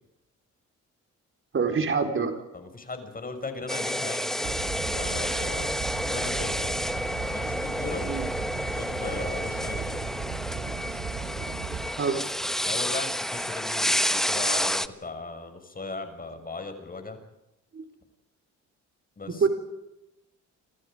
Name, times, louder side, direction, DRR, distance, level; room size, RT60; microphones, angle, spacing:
voice 1, 1.5-2.4 8.1-8.3 12.0-12.2 17.7-17.8 19.4-19.5, right 5 dB, 45° right, 5 dB, 4.4 m, -25 dB
voice 2, 2.5-4.5 4.9-5.7 6.1-6.8 7.3-8.1 8.7-10.0 12.1-17.2 19.2-19.5, left 3 dB, 30° left, 7 dB, 6.3 m, -38 dB
sound 1, 3.7-14.9, equal, ahead, 1.2 m, -30 dB
sound 2, 4.4-11.9, right 6 dB, 65° right, 5.8 m, -36 dB
29.0 x 27.0 x 5.2 m, 0.90 s
cardioid pair, 90°, 30 cm